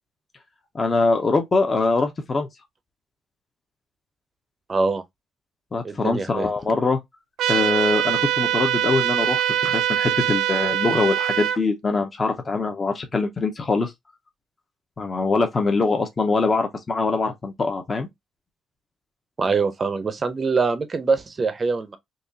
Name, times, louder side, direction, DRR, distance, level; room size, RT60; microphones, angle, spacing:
voice 1, 0.7-2.5 5.7-7.0 7.5-13.9 15.0-18.1, left 3 dB, 25° left, 0.6 m, -23 dB
voice 2, 4.7-5.0 5.8-6.5 19.4-22.0, right 4 dB, 25° right, 0.6 m, -23 dB
sound 1, 7.4-11.6, right 11 dB, 75° right, 0.5 m, -23 dB
3.9 x 2.8 x 2.6 m
cardioid pair, 165°, 0 cm